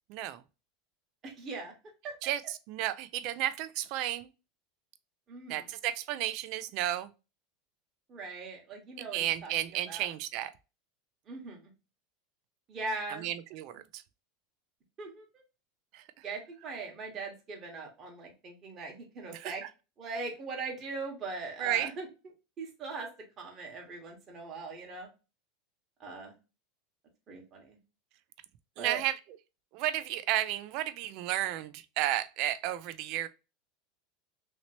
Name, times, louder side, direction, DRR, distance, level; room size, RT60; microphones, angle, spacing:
voice 1, 0.1-0.4 2.2-4.3 5.5-7.1 9.1-10.5 13.1-14.0 15.9-16.2 19.3-19.5 21.6-21.9 28.8-29.2 29.7-33.3, right 13 dB, 55° right, 0.4 m, -33 dB
voice 2, 1.2-1.7 2.0-2.1 5.3-5.6 8.1-9.5 9.9-10.1 11.3-11.7 12.7-13.3 15.0-15.4 16.2-19.6 20.0-22.1 22.6-23.1 23.4-25.1 26.0-26.3 27.3-27.8 28.8-29.0, right 3 dB, 30° right, 1.2 m, -40 dB
2.9 x 2.9 x 2.8 m
supercardioid pair, 130°, 0 cm